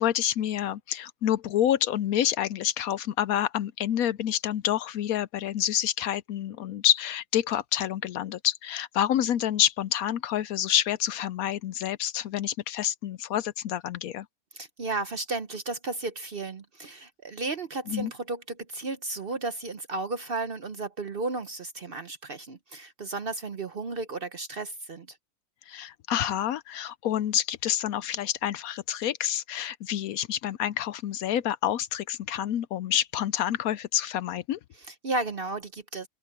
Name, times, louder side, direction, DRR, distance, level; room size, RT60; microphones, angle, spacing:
voice 1, 0.0-14.3 17.9-18.1 25.7-34.6, left 11 dB, 70° left, 1.0 m, -28 dB
voice 2, 14.5-25.2 34.8-36.1, right 3 dB, 45° right, 0.8 m, -34 dB
omnidirectional pair, 1.7 m